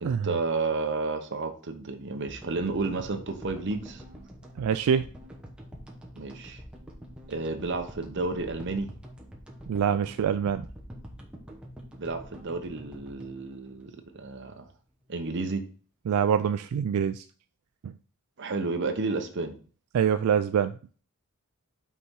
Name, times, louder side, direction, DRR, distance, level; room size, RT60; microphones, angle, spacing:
voice 1, 0.0-4.0 6.2-6.6 7.3-8.9 12.0-14.7 15.1-15.7 18.4-19.5, right 3 dB, 55° right, 7 dB, 0.9 m, -31 dB
sound 1, 2.3-14.6, equal, 5° right, 0.9 m, -46 dB
voice 2, 4.6-5.1 9.7-10.6 16.1-17.2 17.8-17.9 19.9-20.7, right 8 dB, 80° right, 10 dB, 0.3 m, -25 dB
5.6 x 4.2 x 4.7 m, 0.40 s
head